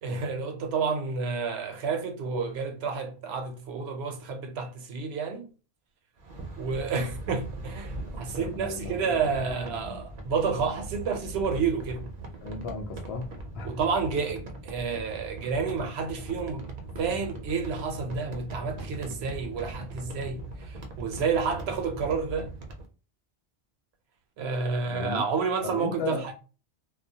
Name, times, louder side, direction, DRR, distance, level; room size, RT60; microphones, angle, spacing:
voice 1, 0.0-5.5 6.6-12.1 13.6-16.7 17.0-22.5 24.4-26.3, right 5 dB, 75° right, 0.8 m, -30 dB
sound 1, 6.2-22.9, right 2 dB, 55° right, 0.5 m, -40 dB
voice 2, 8.4-10.0 12.4-13.8 24.9-25.2 25.6-26.2, left 4 dB, 75° left, 0.8 m, -36 dB
2.3 x 2.0 x 2.6 m
omnidirectional pair, 1.1 m